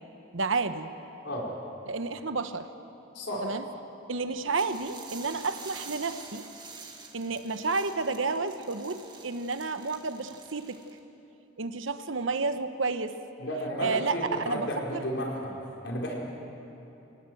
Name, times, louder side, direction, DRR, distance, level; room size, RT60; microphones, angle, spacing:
voice 1, 0.3-0.9 1.9-2.7 3.4-3.6 4.1-6.5 7.1-10.8 11.6-13.2 13.8-15.0, right 4 dB, 80° right, 10 dB, 1.0 m, -31 dB
voice 2, 3.1-3.5 13.4-15.5 15.8-16.1, equal, 65° left, -2 dB, 4.5 m, -32 dB
sound 1, 4.5-11.0, right 5 dB, 20° right, 1.8 m, -47 dB
24.5 x 18.5 x 7.8 m, 3.0 s
head